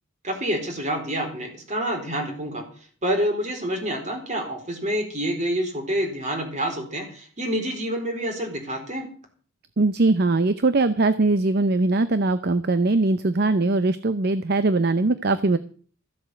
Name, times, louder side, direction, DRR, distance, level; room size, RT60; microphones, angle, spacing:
voice 1, 0.2-2.6 3.0-9.1, equal, 40° right, 4 dB, 4.2 m, -27 dB
voice 2, 9.8-15.6, right 3 dB, 55° right, 12 dB, 0.7 m, -21 dB
14.0 x 7.8 x 7.7 m, 0.43 s
head